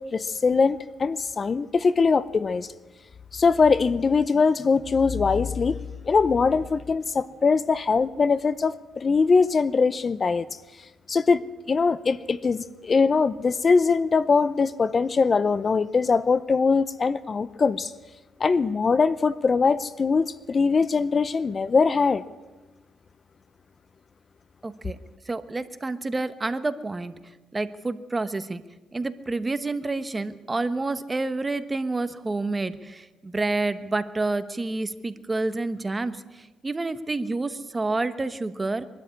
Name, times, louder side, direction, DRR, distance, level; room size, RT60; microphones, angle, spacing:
voice 1, 0.0-2.7 3.3-5.8 6.0-10.5 11.1-11.4 11.7-17.9 18.4-22.2, left 4 dB, 35° left, 17 dB, 0.6 m, -22 dB
voice 2, 24.6-25.0 25.3-27.1 27.5-28.6 28.9-38.9, right 3 dB, 20° right, 12 dB, 1.2 m, -29 dB
23.0 x 12.5 x 9.8 m, 1.2 s
cardioid pair, 90°, 0 cm